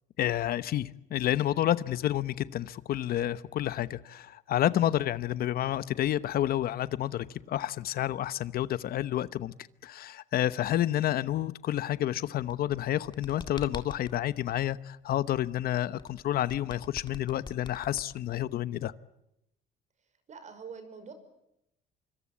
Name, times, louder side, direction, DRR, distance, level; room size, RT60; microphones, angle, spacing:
voice 1, 0.2-9.5 9.8-18.9, left 12 dB, 65° left, 1.0 m, -29 dB
sound 1, 12.5-14.2 16.0-18.6, left 4 dB, 25° left, 2.0 m, -44 dB
voice 2, 20.3-21.1, right 5 dB, 45° right, 5.6 m, -44 dB
25.5 x 24.5 x 8.7 m
cardioid pair, 110°, 17 cm